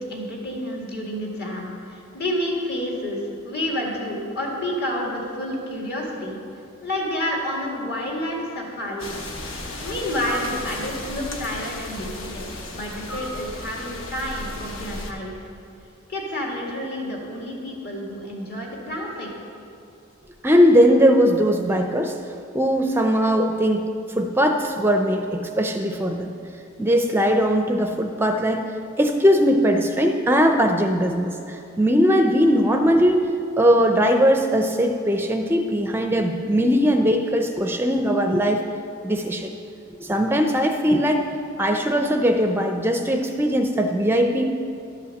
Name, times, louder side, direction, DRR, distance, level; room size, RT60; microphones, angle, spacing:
voice 1, 0.0-6.4 6.8-9.1 9.8-12.5 12.7-15.5 16.1-19.3, left 1 dB, 55° left, -2 dB, 2.1 m, -29 dB
sound 1, 9.0-15.1, left 1 dB, 70° left, 1.1 m, -34 dB
voice 2, 20.4-22.2 22.5-26.3 26.8-28.6 29.0-33.2 33.6-38.6 39.0-39.5 40.0-41.2 41.6-44.5, equal, 10° right, 5 dB, 0.4 m, -20 dB
12.0 x 5.6 x 7.6 m, 2.6 s
head